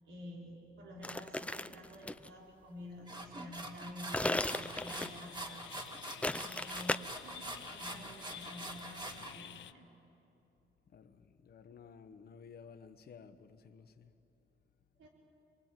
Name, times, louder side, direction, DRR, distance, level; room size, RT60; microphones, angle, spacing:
voice 1, 0.1-4.4 4.7-5.8 6.1-9.9 15.0-15.1, equal, 80° right, 4.0 m, -50 dB
sound 1, 1.0-2.3 4.1-5.3 6.2-7.0, left 1 dB, 5° left, 0.5 m, -35 dB
sound 2, 3.1-9.3, right 1 dB, 25° right, 2.3 m, -45 dB
sound 3, 4.4-9.7, left 10 dB, 70° left, 0.7 m, -51 dB
voice 2, 10.9-14.1, left 6 dB, 55° left, 1.2 m, -55 dB
27.0 x 23.0 x 9.1 m
cardioid pair, 110°, 20 cm